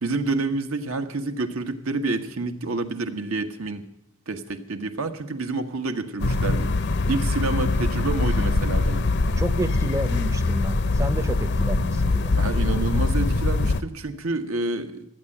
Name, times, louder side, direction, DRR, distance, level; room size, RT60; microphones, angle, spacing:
voice 1, 0.0-3.8 4.3-6.8 7.1-9.1 12.4-15.1, right 3 dB, 90° right, 6 dB, 1.3 m, -28 dB
sound 1, 6.2-13.8, left 3 dB, 55° left, 0.6 m, -23 dB
voice 2, 9.4-12.6, right 1 dB, 15° right, 7 dB, 0.6 m, -30 dB
13.0 x 8.9 x 9.7 m, 0.82 s
head